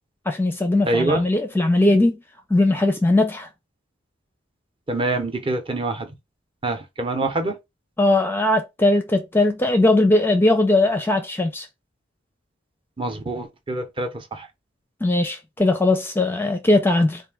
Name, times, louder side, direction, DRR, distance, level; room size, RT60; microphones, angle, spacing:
voice 1, 0.3-2.2 2.5-3.5 8.0-11.7 15.0-17.2, left 2 dB, 10° left, 0.5 m, -19 dB
voice 2, 0.9-1.3 4.9-6.1 6.6-7.6 13.0-14.5, right 2 dB, 25° right, 0.8 m, -25 dB
4.2 x 2.6 x 3.5 m
head